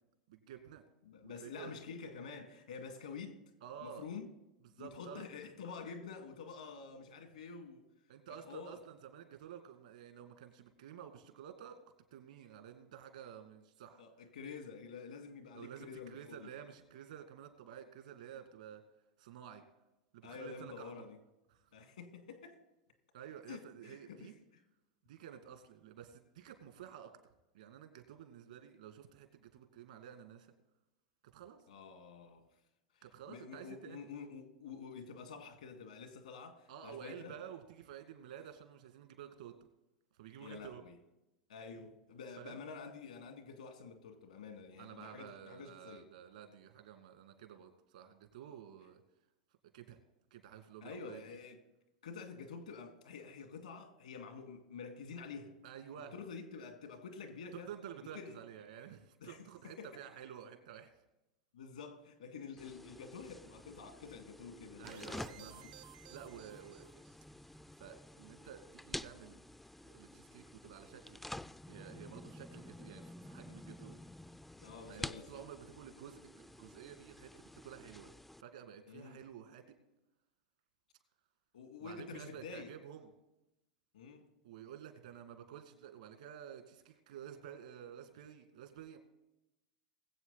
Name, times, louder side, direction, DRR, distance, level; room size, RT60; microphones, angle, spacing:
voice 1, 0.3-0.8 1.2-1.8 3.6-4.1 4.7-5.2 8.1-11.8 12.1-14.0 15.5-18.8 19.2-19.6 20.1-21.0 21.5-21.6 23.1-24.3 25.0-27.1 27.5-30.5 31.3-31.6 33.0-34.1 36.7-39.5 40.2-40.8 42.4-42.6 44.8-49.0 49.7-50.0 50.3-51.2 55.6-56.1 57.5-60.9 64.8-65.6 66.1-66.9 67.8-69.4 69.8-71.2 71.7-74.0 74.9-78.1 78.4-79.8 81.8-83.1 84.4-89.0, right 9 dB, 75° right, 2.1 m, -51 dB
voice 2, 1.1-3.4 3.8-4.3 4.8-7.8 8.3-8.8 14.0-16.5 20.2-21.2 21.7-22.6 23.5-24.3 31.7-32.5 32.9-37.4 40.4-41.0 41.5-46.1 50.8-51.6 52.0-55.5 56.1-57.7 58.1-58.4 59.2-59.9 61.5-65.7 74.6-75.4 78.9-79.2 81.5-82.7 83.9-84.3, left 5 dB, 80° left, 2.1 m, -48 dB
sound 1, 62.6-78.4, left 1 dB, 5° left, 0.4 m, -50 dB
sound 2, 64.8-67.3, right 14 dB, 55° right, 0.7 m, -57 dB
20.5 x 8.0 x 4.0 m
hypercardioid pair, 90°, 4 cm